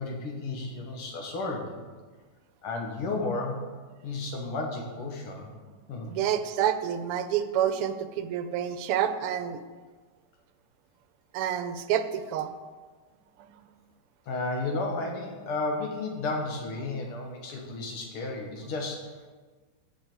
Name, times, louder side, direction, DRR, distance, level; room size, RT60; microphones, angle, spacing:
voice 1, 0.0-1.8 2.6-3.7 4.0-5.5 5.9-6.1 14.3-19.1, left 3 dB, 80° left, 1 dB, 2.4 m, -33 dB
voice 2, 6.1-9.6 11.3-12.5 13.4-13.6, right 9 dB, 90° right, 11 dB, 1.6 m, -28 dB
14.5 x 5.2 x 4.5 m, 1.4 s
omnidirectional pair, 2.4 m